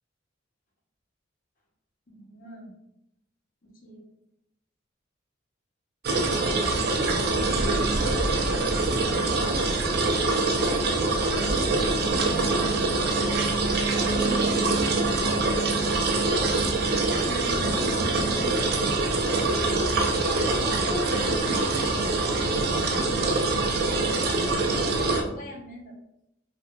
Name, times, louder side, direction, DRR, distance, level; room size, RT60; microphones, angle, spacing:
voice 1, 2.1-2.7 3.6-4.0 6.1-9.6 14.0-15.1 16.3-16.6 17.2-19.0 20.3-21.9 22.7-24.5 25.2-25.9, left 1 dB, 40° left, -2 dB, 0.7 m, -41 dB
sound 1, 6.0-25.2, right 3 dB, 50° right, 0.4 m, -24 dB
3.5 x 2.2 x 2.2 m, 0.82 s
head